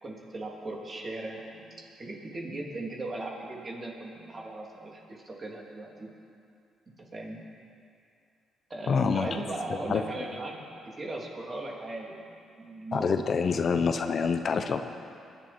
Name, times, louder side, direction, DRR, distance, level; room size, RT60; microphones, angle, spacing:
voice 1, 0.0-1.6 2.0-6.1 7.0-7.4 8.7-12.2 12.5-13.1, right 2 dB, 35° right, -1 dB, 2.8 m, -38 dB
voice 2, 8.9-9.4 9.7-10.0 12.9-14.8, left 5 dB, 50° left, 7 dB, 0.8 m, -26 dB
22.5 x 11.0 x 4.3 m, 2.5 s
cardioid pair, 90°, 0 cm